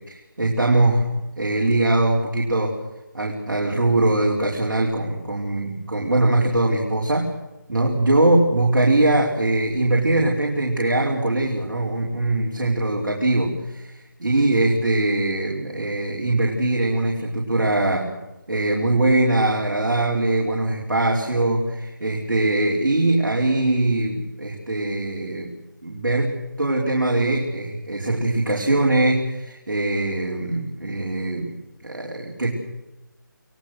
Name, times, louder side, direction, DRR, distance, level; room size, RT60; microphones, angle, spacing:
voice 1, 0.0-2.8 3.1-7.3 7.7-18.1 18.5-25.5 25.8-31.5 31.8-32.5, right 2 dB, 70° right, -2 dB, 5.1 m, -22 dB
28.5 x 19.0 x 6.6 m, 1.0 s
figure-of-eight pair, 165°, 11 cm